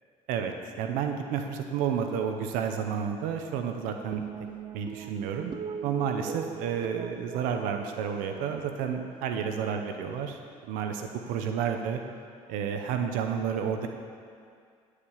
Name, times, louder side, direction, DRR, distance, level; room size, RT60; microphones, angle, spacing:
voice 1, 0.3-4.2 4.7-5.5 5.8-10.4 10.7-12.0 12.5-13.9, right 7 dB, 85° right, 5 dB, 0.8 m, -31 dB
sound 1, 4.1-10.7, right 6 dB, 35° right, 0.4 m, -41 dB
14.5 x 5.0 x 7.1 m, 2.3 s
supercardioid pair, 75°, 14 cm